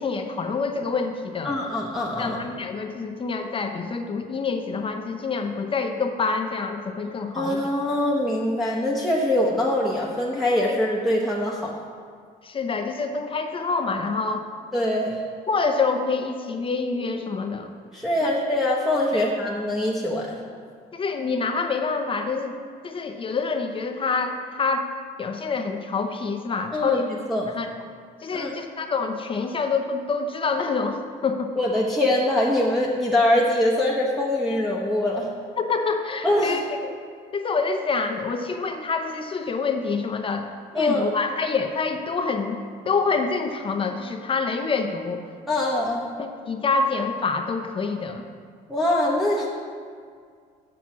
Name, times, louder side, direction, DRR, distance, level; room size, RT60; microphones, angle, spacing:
voice 1, 0.0-1.6 2.2-7.6 10.7-10.8 12.4-14.5 15.5-17.7 18.2-18.3 19.1-19.2 20.9-22.6 22.8-24.9 25.2-27.1 27.5-27.7 28.2-31.5 35.6-36.9 37.3-40.5 40.7-42.6 42.9-45.2 46.2-48.2, left 4 dB, 30° left, 5 dB, 0.6 m, -26 dB
voice 2, 1.4-2.4 7.3-11.7 14.7-15.2 17.9-20.4 26.7-27.5 28.3-28.5 31.6-35.3 36.2-36.6 40.7-41.1 45.5-46.0 48.7-49.5, left 1 dB, ahead, -6 dB, 0.9 m, -23 dB
7.0 x 6.1 x 6.1 m, 2.1 s
cardioid pair, 110°, 17 cm